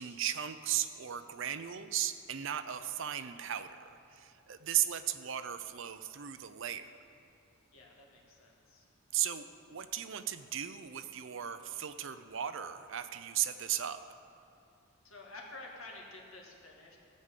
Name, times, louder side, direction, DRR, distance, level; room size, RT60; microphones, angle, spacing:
voice 1, 0.0-6.9 9.1-14.0, right 11 dB, 60° right, 10 dB, 0.5 m, -36 dB
voice 2, 7.7-8.9 15.0-17.0, left 2 dB, 70° left, -1 dB, 2.1 m, -50 dB
15.5 x 5.4 x 8.2 m, 2.5 s
head